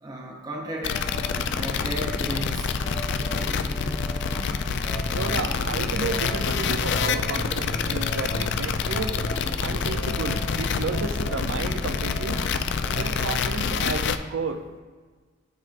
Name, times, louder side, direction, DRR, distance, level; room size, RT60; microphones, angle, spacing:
voice 1, 0.0-1.1 1.5-2.8, right 1 dB, 20° right, 0 dB, 0.6 m, -34 dB
sound 1, 0.8-14.2, left 6 dB, 60° left, 0.3 m, -27 dB
sound 2, 0.9-13.3, equal, 30° left, 0.9 m, -35 dB
voice 2, 5.1-9.1 9.6-12.4 13.0-14.8, right 4 dB, 70° right, 8 dB, 0.5 m, -32 dB
11.5 x 4.1 x 2.5 m, 1.5 s
head